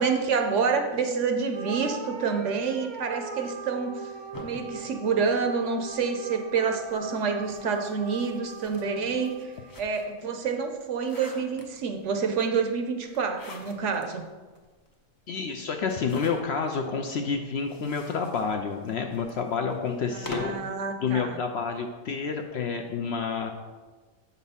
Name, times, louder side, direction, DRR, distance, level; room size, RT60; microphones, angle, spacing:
voice 1, 0.0-4.1 4.4-14.2 20.0-21.4, right 5 dB, 65° right, 5 dB, 0.9 m, -28 dB
sound 1, 1.5-10.1, right 4 dB, 45° right, 0.7 m, -41 dB
sound 2, 4.3-5.9 6.8-10.2 10.7-12.1 13.1-14.1 14.5-14.6 14.9-15.0 15.8-16.8 17.5-20.7, left 1 dB, 25° left, 0.5 m, -44 dB
voice 2, 15.3-20.5 21.0-23.5, left 5 dB, 65° left, 4 dB, 0.7 m, -29 dB
7.0 x 4.2 x 5.4 m, 1.3 s
omnidirectional pair, 1.4 m